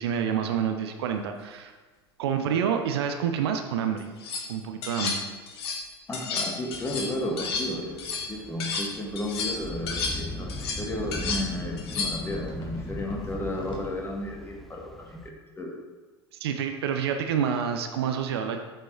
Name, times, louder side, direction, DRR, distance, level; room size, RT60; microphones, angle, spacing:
voice 1, 0.0-1.7 2.2-4.1 4.5-5.2 16.4-18.6, right 8 dB, 65° right, 5 dB, 0.6 m, -28 dB
sound 1, 4.0-4.5 4.8-5.8 6.1-8.9 9.2-12.3, left 4 dB, 65° left, 1.1 m, -32 dB
voice 2, 6.1-15.8, left 1 dB, 15° left, -1 dB, 1.6 m, -33 dB
sound 2, 6.7-15.3, left 1 dB, ahead, 0.6 m, -39 dB
sound 3, 8.3-13.9, left 3 dB, 35° left, 1.7 m, -46 dB
7.8 x 4.6 x 4.5 m, 1.3 s
figure-of-eight pair, 75°, 14 cm